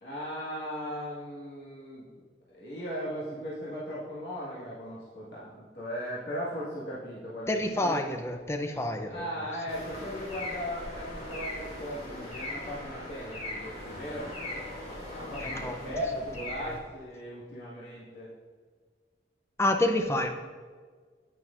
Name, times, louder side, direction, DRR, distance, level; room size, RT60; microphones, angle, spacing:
voice 1, 0.0-2.0 2.5-8.2 9.1-14.3 15.1-18.3, equal, 70° left, -8 dB, 1.6 m, -37 dB
voice 2, 7.5-9.3 15.4-15.9 16.7-16.8 19.6-20.3, left 1 dB, 15° left, 6 dB, 0.5 m, -29 dB
sound 1, 9.7-16.8, left 1 dB, 40° left, 1.9 m, -39 dB
9.1 x 8.8 x 2.5 m, 1.6 s
head